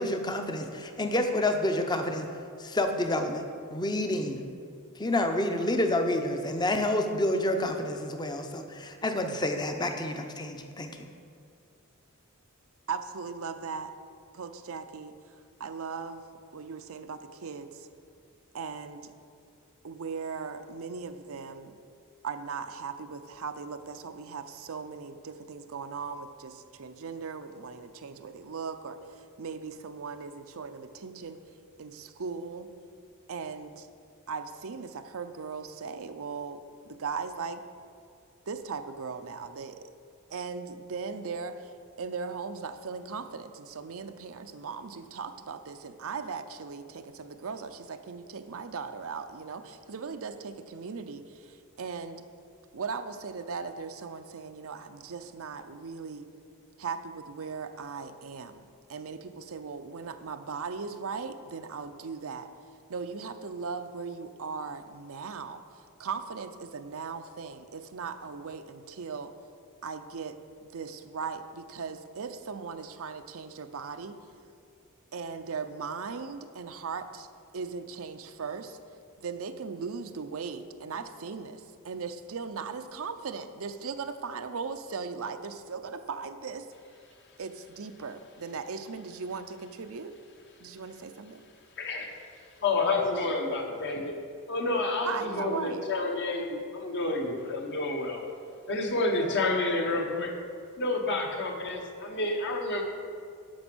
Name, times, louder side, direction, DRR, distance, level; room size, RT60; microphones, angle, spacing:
voice 1, 0.0-2.3 2.6-4.4 5.0-11.1, left 1 dB, 20° left, 6 dB, 0.8 m, -29 dB
voice 2, 12.9-13.9 14.3-15.1 15.6-16.2 16.5-17.9 18.5-19.1 19.8-21.7 22.2-31.4 31.8-32.7 33.3-33.9 34.3-37.6 38.5-39.8 40.3-52.2 52.7-56.3 56.8-62.5 62.9-65.6 66.0-69.3 69.8-74.2 75.1-77.3 77.5-78.8 79.2-86.7 87.4-90.1 90.6-91.4 95.0-95.9, right 5 dB, 65° right, 9 dB, 0.6 m, -38 dB
voice 3, 91.8-92.1 92.6-94.2 94.5-98.2 98.7-100.3 100.8-102.8, left 2 dB, 50° left, 2 dB, 1.3 m, -29 dB
11.5 x 6.1 x 6.2 m, 2.3 s
head